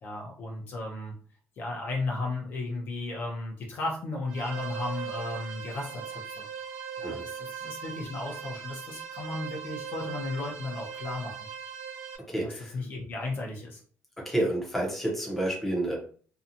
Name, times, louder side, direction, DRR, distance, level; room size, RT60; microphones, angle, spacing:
voice 1, 0.0-1.1 1.6-6.5 7.0-11.3 12.4-13.8, left 2 dB, 45° left, -1 dB, 0.7 m, -35 dB
sound 1, 4.3-12.2, right 7 dB, 80° right, 0.6 m, -39 dB
voice 2, 12.3-12.8 14.2-16.0, right 1 dB, 5° left, -3 dB, 0.7 m, -29 dB
2.7 x 2.3 x 2.6 m, 0.44 s
cardioid pair, 170°, 5 cm